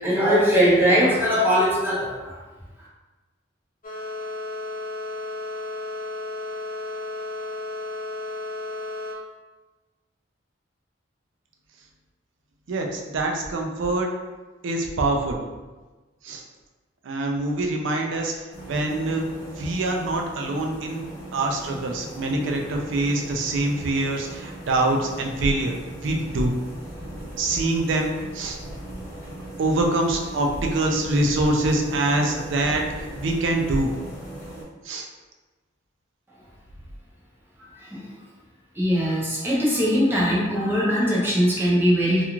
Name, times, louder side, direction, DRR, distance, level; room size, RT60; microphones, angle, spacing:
voice 1, 0.0-2.4 37.6-38.1 38.8-42.2, equal, 10° right, -6 dB, 0.6 m, -21 dB
sound 1, 3.8-9.1, left 2 dB, 45° left, 0.5 m, -33 dB
voice 2, 12.7-14.1 14.6-15.4 16.2-16.4 17.1-18.3 18.7-19.2 19.6-21.0 21.3-25.8 26.0-26.5 27.4-28.6 29.6-32.8 33.2-33.9 34.8-35.1, right 2 dB, 65° right, 2 dB, 0.4 m, -24 dB
sound 2, 18.5-34.6, right 1 dB, 10° left, 1.1 m, -38 dB
2.4 x 2.3 x 2.9 m, 1.2 s
head